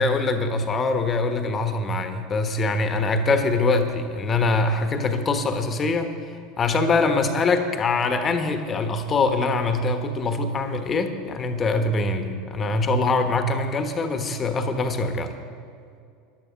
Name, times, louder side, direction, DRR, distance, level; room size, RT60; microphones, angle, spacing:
voice 1, 0.0-15.3, left 3 dB, 30° left, 7 dB, 1.2 m, -23 dB
14.0 x 11.0 x 5.1 m, 2.4 s
figure-of-eight pair, 75°, 0 cm